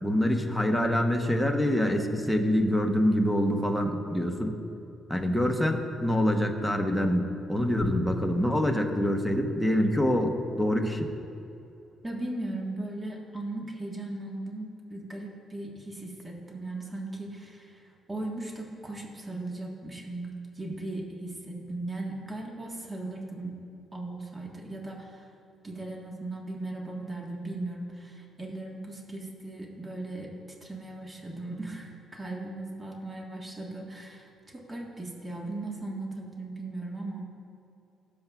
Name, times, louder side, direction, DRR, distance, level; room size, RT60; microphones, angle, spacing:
voice 1, 0.0-4.5 5.1-11.1, equal, ahead, 2 dB, 0.9 m, -25 dB
voice 2, 12.0-23.6 23.9-25.3 25.6-30.3 30.6-37.3, right 2 dB, 20° right, -1 dB, 1.4 m, -38 dB
16.5 x 6.7 x 2.4 m, 2.8 s
cardioid pair, 90°, 0 cm